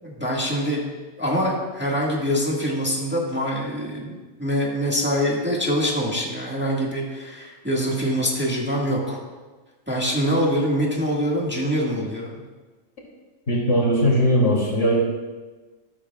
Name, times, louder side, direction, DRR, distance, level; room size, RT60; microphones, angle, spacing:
voice 1, 0.0-0.9 1.2-9.2 9.9-12.3, equal, 10° right, -4 dB, 1.7 m, -24 dB
voice 2, 13.5-14.9, equal, 65° left, -4 dB, 3.3 m, -19 dB
13.5 x 13.5 x 2.4 m, 1.3 s
omnidirectional pair, 1.3 m